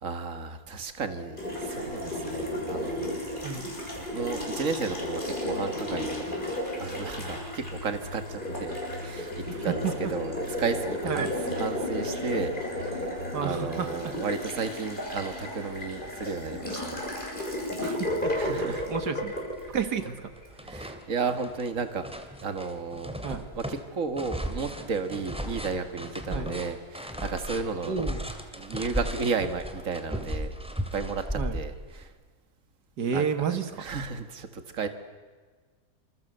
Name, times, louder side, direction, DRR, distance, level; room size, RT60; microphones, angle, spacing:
voice 1, 0.0-3.3 4.1-6.2 6.8-17.0 18.4-18.9 20.6-22.1 22.4-23.1 23.5-28.0 28.5-30.5 30.9-32.1 33.1-34.9, right 4 dB, 55° right, 8 dB, 2.2 m, -33 dB
Water tap faucet, 1.4-20.5, left 1 dB, 30° left, 7.2 m, -33 dB
sound 1, 7.1-13.8, left 2 dB, 60° left, 5.4 m, -43 dB
voice 2, 13.3-13.9 17.8-19.3 19.7-20.3 23.2-23.4 26.3-26.5 27.9-28.2 31.3-31.6 33.0-33.8, right 6 dB, 85° right, 9 dB, 2.2 m, -31 dB
sound 2, 18.9-19.0 19.4-20.1 20.4-32.0, equal, 5° right, 2.6 m, -36 dB
27.5 x 27.0 x 8.1 m, 1.5 s
omnidirectional pair, 1.7 m